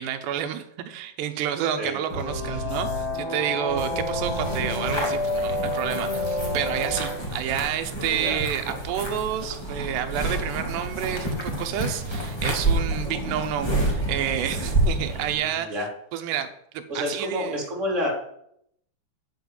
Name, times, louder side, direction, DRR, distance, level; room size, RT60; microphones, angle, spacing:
voice 1, 0.0-15.7 16.1-16.5 16.7-17.7, right 10 dB, 75° right, 7 dB, 2.8 m, -29 dB
sound 1, 2.1-7.1, left 1 dB, 35° left, 3.3 m, -28 dB
sound 2, 4.2-15.3, right 2 dB, 10° left, 1.3 m, -29 dB
voice 2, 8.1-8.4 15.1-15.9 16.9-18.1, equal, 20° right, -1 dB, 2.4 m, -30 dB
9.6 x 6.7 x 8.1 m, 0.72 s
omnidirectional pair, 5.4 m